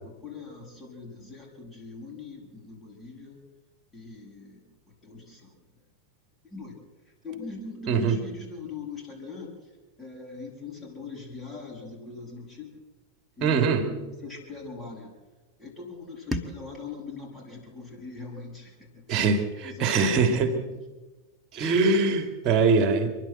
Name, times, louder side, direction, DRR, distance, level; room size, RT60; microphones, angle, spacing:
voice 1, 0.0-3.4 3.9-5.5 6.4-6.8 7.2-9.5 10.0-12.7 13.4-15.2 15.6-19.2 19.6-20.6, left 4 dB, 15° left, -3 dB, 7.3 m, -41 dB
voice 2, 13.4-13.9 19.1-20.6 21.5-23.1, right 4 dB, 35° right, 8 dB, 3.2 m, -23 dB
sound 1, 16.3-19.2, left 1 dB, 5° right, 1.7 m, -39 dB
29.5 x 11.0 x 8.0 m, 1.2 s
figure-of-eight pair, 90°, 0 cm